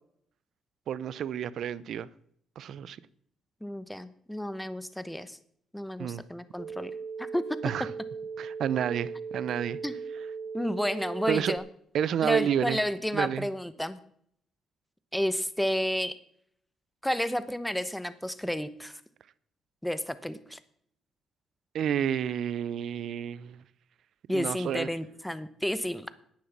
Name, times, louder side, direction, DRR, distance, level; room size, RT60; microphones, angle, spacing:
voice 1, 0.9-2.1 2.6-3.0 6.0-6.2 7.6-7.9 8.4-9.8 11.3-11.5 11.9-12.8 13.1-13.5 21.7-23.6 24.3-24.9, right 9 dB, 70° right, 0.6 m, -30 dB
voice 2, 3.6-5.4 5.7-6.9 7.2-7.4 9.8-9.9 10.5-11.6 12.2-14.0 15.1-16.1 17.0-19.0 19.8-20.6 24.3-26.1, equal, 5° left, 1.0 m, -31 dB
sound 1, 6.6-11.6, right 5 dB, 35° right, 3.7 m, -38 dB
10.5 x 9.3 x 7.4 m
cardioid pair, 90°, 0 cm